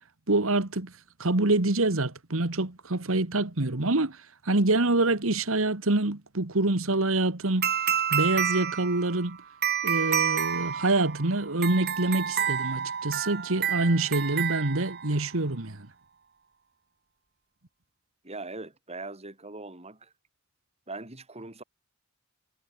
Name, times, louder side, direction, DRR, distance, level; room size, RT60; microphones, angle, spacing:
voice 1, 0.3-0.9 1.2-4.2 4.5-7.7 8.1-9.4 9.8-15.9, right 2 dB, 70° right, 1.8 m, -26 dB
sound 1, 7.6-15.3, right 8 dB, 50° right, 3.5 m, -29 dB
voice 2, 18.2-20.1 20.9-21.6, right 3 dB, 30° right, 3.9 m, -41 dB
head